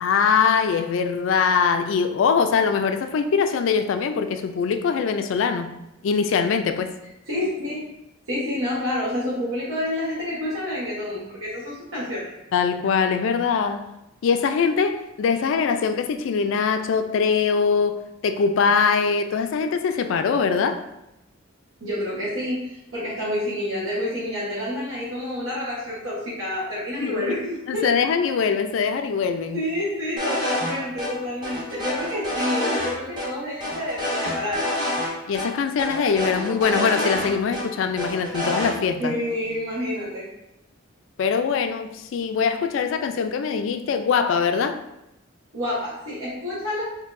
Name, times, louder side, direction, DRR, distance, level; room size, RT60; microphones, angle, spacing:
voice 1, 0.0-5.7 6.0-6.9 12.5-13.9 14.2-20.8 27.0-27.2 27.7-29.6 35.3-39.2 41.2-44.8, left 6 dB, 65° left, 0.3 m, -22 dB
voice 2, 7.3-7.8 8.3-12.3 21.8-27.8 29.5-34.7 39.0-40.3 45.5-46.8, left 1 dB, 70° right, 1.1 m, -28 dB
sound 1, 30.2-30.7 31.0-31.1 31.4-32.9 33.2-33.3 33.6-35.1 35.3-35.5 35.8-37.6 38.0-38.7, left 1 dB, 20° right, 1.0 m, -27 dB
4.5 x 2.7 x 2.5 m
head